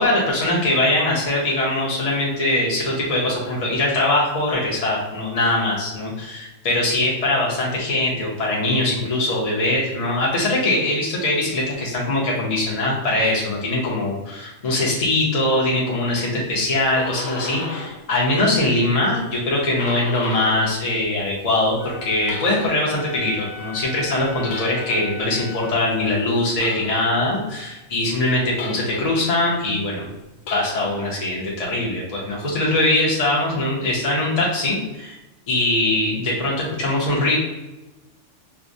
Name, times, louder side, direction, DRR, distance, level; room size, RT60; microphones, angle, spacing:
voice 1, 0.0-30.1 30.5-35.2 35.5-37.4, left 2 dB, 40° left, -4 dB, 0.6 m, -22 dB
sound 1, 16.7-18.1 18.4-20.8 21.1-23.0 24.4-25.2 26.6-27.3 28.6-29.3 30.4-31.1, left 3 dB, 80° left, 0.9 m, -35 dB
Wind instrument woodwind instrument, 21.8-25.9, left 4 dB, 10° left, 1.0 m, -38 dB
4.5 x 2.0 x 2.6 m, 1.0 s
omnidirectional pair, 1.2 m